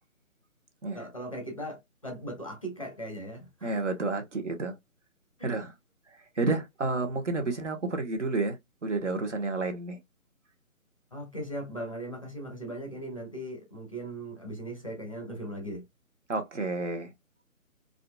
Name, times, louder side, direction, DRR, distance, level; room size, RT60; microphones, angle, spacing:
voice 1, 0.9-3.8 5.4-5.6 11.1-15.8, right 1 dB, 25° left, 0.6 m, -38 dB
voice 2, 3.6-4.7 5.4-5.7 6.4-10.0 16.3-17.1, right 3 dB, 55° right, 1.3 m, -30 dB
4.0 x 2.7 x 2.2 m
figure-of-eight pair, 150°, 42 cm